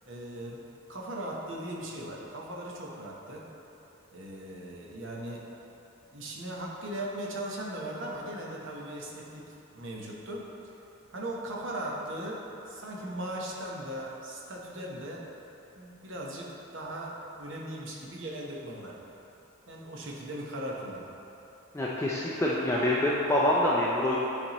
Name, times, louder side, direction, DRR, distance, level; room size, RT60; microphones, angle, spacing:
voice 1, 0.1-0.6 0.9-3.5 4.1-5.5 6.1-10.5 11.1-15.2 15.8-18.9 19.7-21.1, right 1 dB, 60° right, -3 dB, 0.9 m, -38 dB
voice 2, 21.7-24.2, left 1 dB, 10° left, -5 dB, 0.3 m, -26 dB
8.5 x 4.2 x 3.0 m, 3.0 s
head